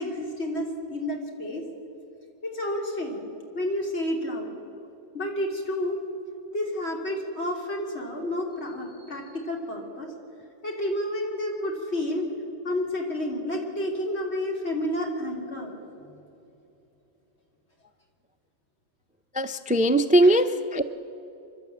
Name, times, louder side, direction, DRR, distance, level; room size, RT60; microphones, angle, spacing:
voice 1, 0.0-1.6 2.4-4.5 5.1-6.0 6.5-10.1 10.6-12.3 12.6-15.7 20.2-20.4, left 1 dB, 70° left, 0 dB, 3.5 m, -30 dB
voice 2, 19.3-20.8, right 1 dB, 10° right, 11 dB, 0.3 m, -20 dB
28.0 x 12.0 x 8.6 m, 2.8 s
omnidirectional pair, 1.2 m